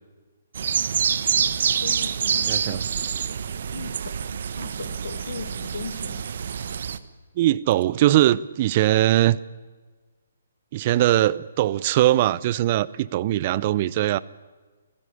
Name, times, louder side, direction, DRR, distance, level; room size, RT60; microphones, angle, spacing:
sound 1, 0.5-7.0, right 7 dB, 60° right, 1.2 m, -26 dB
voice 1, 1.7-2.9 3.7-6.2, left 5 dB, 70° left, 2.4 m, -38 dB
voice 2, 2.3-2.8 7.4-9.4 10.7-14.2, right 14 dB, 40° right, 0.6 m, -21 dB
26.0 x 15.5 x 9.7 m
hypercardioid pair, 140°, 0 cm